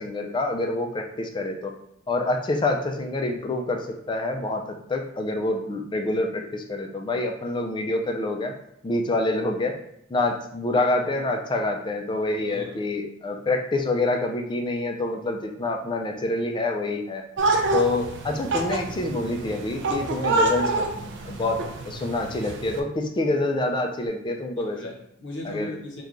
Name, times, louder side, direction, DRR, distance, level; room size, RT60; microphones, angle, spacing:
voice 1, 0.0-1.7 2.1-8.5 8.8-9.8 10.1-17.2 17.7-24.8 25.5-25.7, left 2 dB, 25° left, 3 dB, 0.3 m, -27 dB
voice 2, 12.4-12.7 24.6-26.0, equal, 65° left, 0 dB, 0.8 m, -37 dB
sound 1, 17.4-22.8, right 2 dB, 60° right, 0.4 m, -27 dB
3.1 x 2.2 x 3.7 m, 0.73 s
head